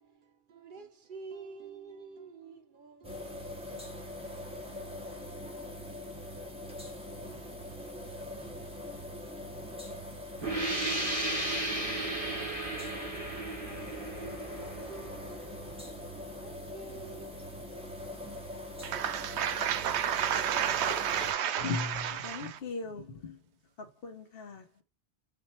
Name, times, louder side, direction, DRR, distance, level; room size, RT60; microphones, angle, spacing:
voice 1, 0.5-3.4 3.7-4.0 4.7-5.1 7.2-7.5 12.9-13.2 14.9-15.5 16.4-17.3, right 4 dB, 55° right, 0.7 m, -49 dB
sound 1, 3.0-21.3, left 1 dB, 5° right, 0.9 m, -43 dB
sound 2, 10.4-15.9, right 2 dB, 30° right, 1.4 m, -35 dB
voice 2, 18.8-22.6, right 9 dB, 85° right, 0.8 m, -31 dB
voice 3, 21.6-23.4 24.0-24.8, left 4 dB, 65° left, 0.9 m, -38 dB
4.3 x 2.5 x 4.2 m
omnidirectional pair, 1.1 m